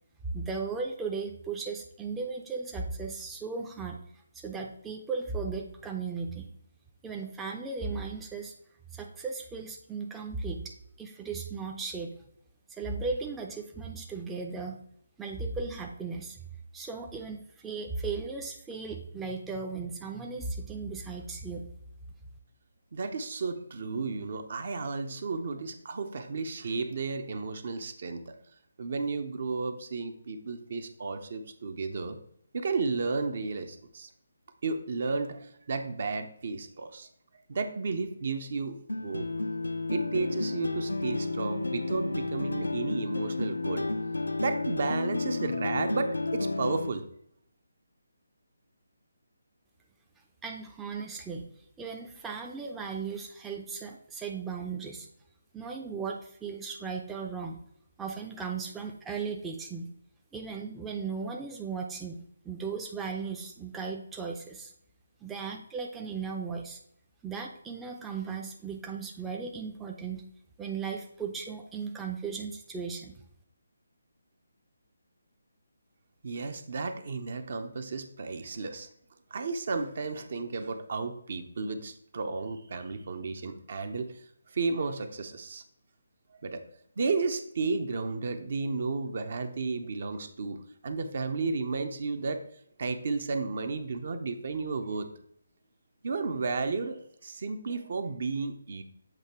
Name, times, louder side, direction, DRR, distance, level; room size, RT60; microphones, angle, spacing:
voice 1, 0.3-4.0 4.3-6.5 7.0-8.5 8.9-12.1 12.7-14.8 15.2-16.4 16.7-21.7 50.4-51.4 51.8-55.1 55.5-57.6 58.0-59.9 60.3-62.2 62.4-64.7 65.2-66.8 67.2-70.2 70.6-73.2, right 4 dB, 10° right, 1 dB, 0.5 m, -36 dB
voice 2, 22.9-28.4 28.8-32.2 32.5-34.1 34.6-37.1 37.5-38.8 39.0-39.3 39.9-43.9 44.4-47.0 76.2-78.9 79.3-85.6 86.3-86.6 87.0-92.4 92.8-95.1 96.0-98.8, right 4 dB, 50° right, 8 dB, 0.7 m, -33 dB
sound 1, 38.9-46.9, left 2 dB, 85° left, 0.5 m, -31 dB
7.6 x 2.9 x 4.3 m, 0.69 s
figure-of-eight pair, 150°, 0 cm